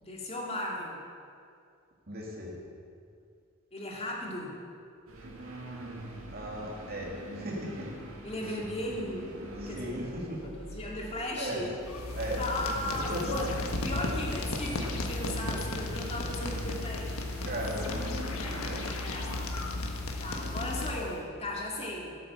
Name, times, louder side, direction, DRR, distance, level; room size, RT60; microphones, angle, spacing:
voice 1, 0.0-1.0 3.7-4.6 8.2-10.1 10.4-11.7 12.4-13.5 13.8-17.3 17.9-18.0 18.3-19.3 20.2-22.2, left 1 dB, 30° left, -2 dB, 2.2 m, -37 dB
voice 2, 2.1-2.5 6.3-7.9 8.4-8.6 9.0-9.1 9.6-10.4 11.4-11.6 12.1-13.4 17.5-18.8 20.3-20.7, right 1 dB, 45° right, -2 dB, 2.7 m, -38 dB
sound 1, 5.1-19.5, right 1 dB, 80° right, 2.1 m, -43 dB
sound 2, 11.8-21.2, left 2 dB, 90° left, 1.4 m, -35 dB
12.5 x 8.8 x 7.1 m, 2.3 s
head